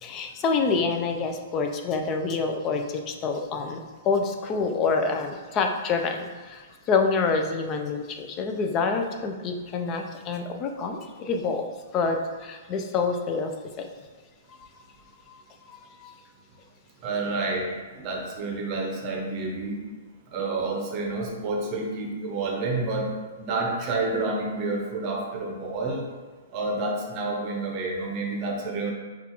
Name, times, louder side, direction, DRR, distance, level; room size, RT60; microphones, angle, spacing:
voice 1, 0.0-11.6 11.9-13.5 13.8-13.9 14.5-14.6 15.3-15.4 15.7-16.1, left 4 dB, 25° left, 4 dB, 0.4 m, -27 dB
voice 2, 17.0-19.8 20.3-26.1 26.5-28.9, right 3 dB, 35° right, 0 dB, 0.7 m, -29 dB
5.8 x 2.4 x 3.0 m, 1.3 s
hypercardioid pair, 145°, 0 cm